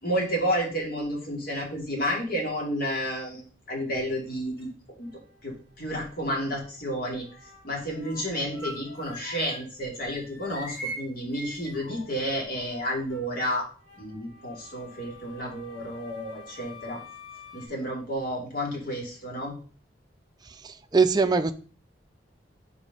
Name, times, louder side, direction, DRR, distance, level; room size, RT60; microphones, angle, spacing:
voice 1, 0.0-4.7 5.0-5.1 5.4-7.2 7.6-13.7 14.0-17.0 17.5-19.5, equal, 55° left, 2.6 m, -31 dB
sound 1, 4.1-4.6 5.0-6.8 7.2-9.7 10.0-17.7, equal, 90° left, 3.1 m, -45 dB
voice 2, 20.5-21.5, right 4 dB, 25° right, 0.5 m, -23 dB
5.3 x 5.0 x 5.3 m
head